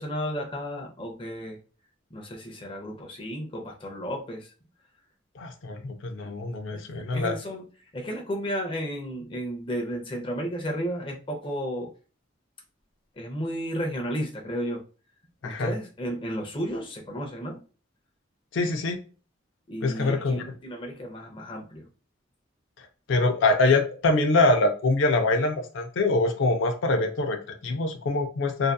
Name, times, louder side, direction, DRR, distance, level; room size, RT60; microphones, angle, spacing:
voice 1, 0.0-1.6 2.1-4.5 6.2-6.3 6.7-6.8 7.1-7.6 7.9-11.9 13.2-14.8 15.4-17.6 19.7-21.9, equal, 25° left, 0 dB, 0.5 m, -33 dB
voice 2, 5.4-7.4 15.4-15.7 18.5-19.0 19.8-20.4 23.1-28.7, left 2 dB, 80° left, 5 dB, 0.4 m, -24 dB
2.6 x 2.3 x 2.2 m, 0.36 s
head